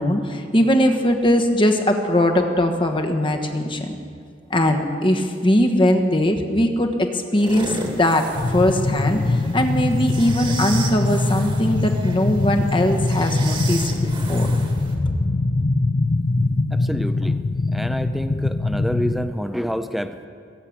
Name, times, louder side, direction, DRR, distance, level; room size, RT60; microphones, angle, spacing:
voice 1, 0.0-4.0 4.5-14.5, left 1 dB, 30° left, 4 dB, 1.3 m, -20 dB
sound 1, 7.3-14.9, right 3 dB, 30° right, 1.8 m, -35 dB
sound 2, 8.3-19.3, left 2 dB, 45° left, 0.5 m, -22 dB
voice 2, 16.7-17.4 17.7-20.3, equal, ahead, 10 dB, 0.6 m, -28 dB
20.5 x 7.6 x 8.6 m, 2.5 s
head